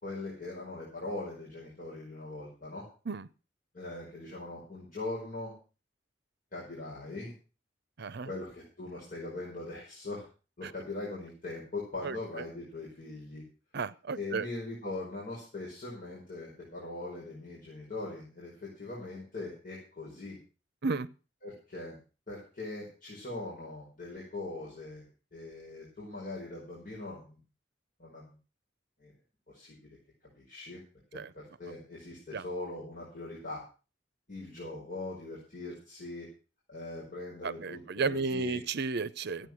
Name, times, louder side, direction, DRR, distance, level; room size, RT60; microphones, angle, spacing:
voice 1, 0.0-2.9 3.7-5.5 6.5-7.3 8.2-10.3 10.6-13.4 14.2-20.4 21.4-22.0 22.3-27.4 28.0-28.2 29.0-29.1 29.5-30.0 30.4-30.8 31.1-33.6 34.3-36.3 36.7-38.6 39.4-39.5, left 2 dB, 45° left, -6 dB, 5.2 m, -41 dB
voice 2, 8.0-8.3 10.6-10.7 12.0-12.2 13.7-14.5 20.8-21.1 31.1-31.3 32.3-32.4 37.4-39.5, right 4 dB, 60° right, 16 dB, 0.7 m, -33 dB
13.5 x 9.1 x 6.3 m, 0.35 s
head